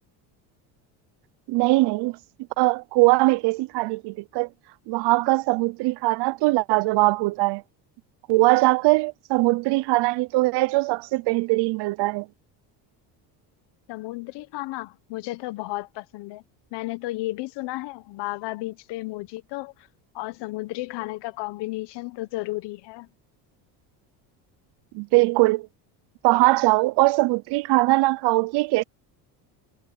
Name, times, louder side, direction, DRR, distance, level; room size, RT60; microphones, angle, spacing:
voice 1, 1.5-2.2 2.6-4.5 4.9-7.6 8.3-12.3 24.9-25.7 26.2-28.8, right 22 dB, 65° right, 0.7 m, -21 dB
voice 2, 13.9-16.4 16.7-19.9 20.1-23.1, left 19 dB, 65° left, 1.3 m, -33 dB
cardioid pair, 115°, 44 cm